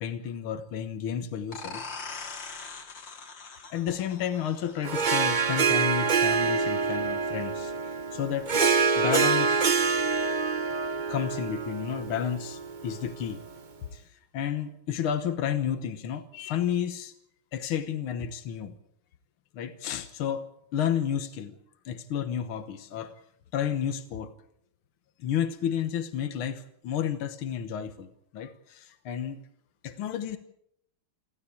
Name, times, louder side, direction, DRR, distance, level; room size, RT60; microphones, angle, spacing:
voice 1, 0.0-1.9 3.7-8.6 9.0-9.7 11.1-13.4 13.9-17.1 17.5-18.7 19.5-21.6 21.9-23.2 23.5-24.3 25.2-29.4 29.8-30.4, left 9 dB, 80° left, 2.0 m, -31 dB
sound 1, 1.5-6.9, left 4 dB, 60° left, 2.9 m, -43 dB
Harp, 4.8-13.5, right 5 dB, 45° right, 0.5 m, -26 dB
29.0 x 12.5 x 8.5 m
omnidirectional pair, 2.3 m